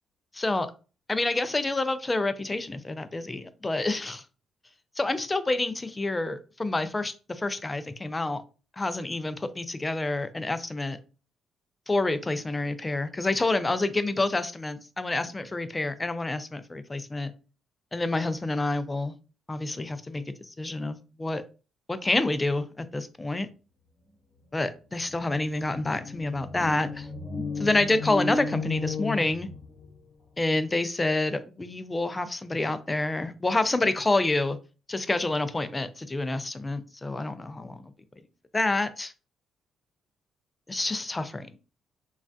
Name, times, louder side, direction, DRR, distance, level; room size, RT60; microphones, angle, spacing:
voice 1, 0.3-0.7 1.1-4.2 5.0-8.4 8.8-11.0 11.9-17.3 17.9-19.1 19.5-21.4 21.9-23.5 24.5-27.1 27.6-29.5 30.4-34.6 34.9-37.9 38.5-39.1 40.7-41.6, left 2 dB, 20° left, 0.3 m, -28 dB
sound 1, 25.0-30.0, left 3 dB, 50° left, 0.8 m, -34 dB
3.2 x 2.3 x 2.6 m
cardioid pair, 90°, 0 cm